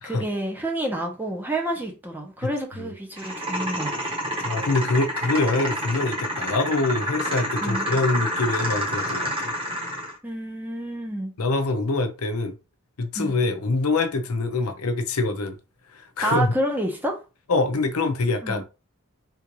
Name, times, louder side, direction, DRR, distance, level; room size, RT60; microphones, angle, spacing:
voice 1, 0.0-4.1 7.6-7.9 10.2-11.3 13.2-13.3 16.2-17.2 18.4-18.6, right 1 dB, 10° right, 0.8 m, -29 dB
sound 1, 3.2-10.2, equal, 25° right, 1.3 m, -28 dB
voice 2, 4.4-9.5 11.4-12.5 13.0-15.6 15.9-16.5 17.5-18.6, left 3 dB, 90° left, 0.6 m, -24 dB
3.6 x 2.5 x 3.0 m
head